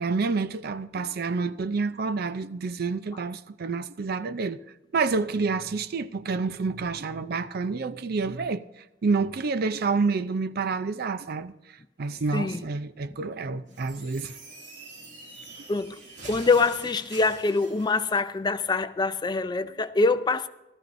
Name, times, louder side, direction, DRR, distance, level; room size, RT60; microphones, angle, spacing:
voice 1, 0.0-4.6 4.9-8.6 9.0-11.5 12.0-14.4, right 4 dB, 55° right, 0.5 m, -28 dB
voice 2, 12.3-12.6 15.7-16.0 16.2-20.5, left 3 dB, 25° left, 0.4 m, -24 dB
sound 1, 13.7-18.1, right 3 dB, 80° right, 2.4 m, -45 dB
16.5 x 13.0 x 2.6 m
head